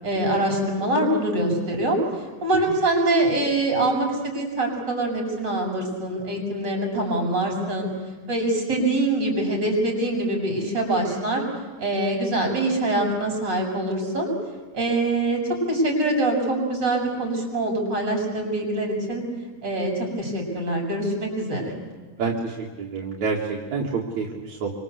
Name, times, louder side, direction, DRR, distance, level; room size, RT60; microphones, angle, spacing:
voice 1, 0.0-2.0 2.4-7.9 8.3-11.4 11.8-14.3 14.7-19.2 19.6-21.7, right 1 dB, 35° right, 1 dB, 7.3 m, -24 dB
voice 2, 22.2-24.7, right 4 dB, 70° right, -1 dB, 3.5 m, -28 dB
27.0 x 25.0 x 8.3 m, 1.3 s
omnidirectional pair, 3.4 m